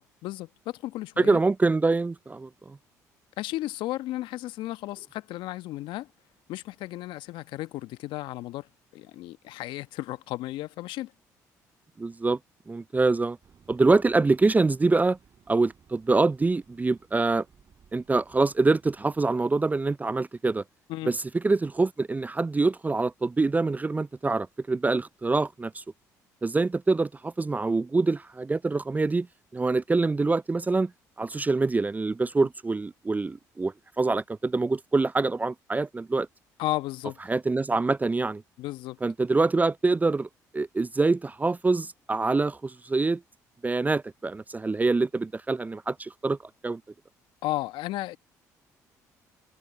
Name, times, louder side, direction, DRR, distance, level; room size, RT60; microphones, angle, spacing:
voice 1, 0.0-1.4 3.4-6.1 6.5-8.7 8.9-11.1 20.9-21.1 36.6-37.2 38.6-39.0 47.4-48.2, left 16 dB, 70° left, 1.2 m, -34 dB
voice 2, 1.2-2.5 12.0-12.4 12.7-13.4 13.7-15.2 15.5-17.4 17.9-20.6 21.1-21.2 21.4-25.8 26.4-29.3 29.5-30.9 31.2-36.3 37.3-38.4 39.0-40.3 40.5-43.2 43.6-46.4 46.6-46.8, right 3 dB, 20° right, 0.4 m, -25 dB
sound 1, 13.4-19.2, right 7 dB, 45° right, 7.8 m, -59 dB
hypercardioid pair, 55°, 9 cm